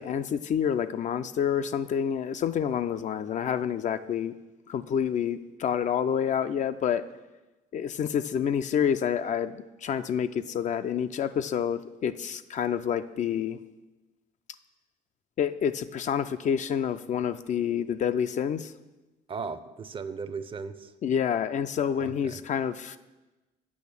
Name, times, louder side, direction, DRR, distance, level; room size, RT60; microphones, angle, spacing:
voice 1, 0.0-4.3 4.7-7.0 7.7-9.5 9.8-13.6 15.4-18.7 21.0-23.0, left 8 dB, 45° left, 11 dB, 0.4 m, -28 dB
voice 2, 19.3-20.9 22.0-22.4, right 5 dB, 30° right, 13 dB, 0.6 m, -37 dB
8.5 x 5.9 x 7.0 m, 1.1 s
cardioid pair, 110°, 17 cm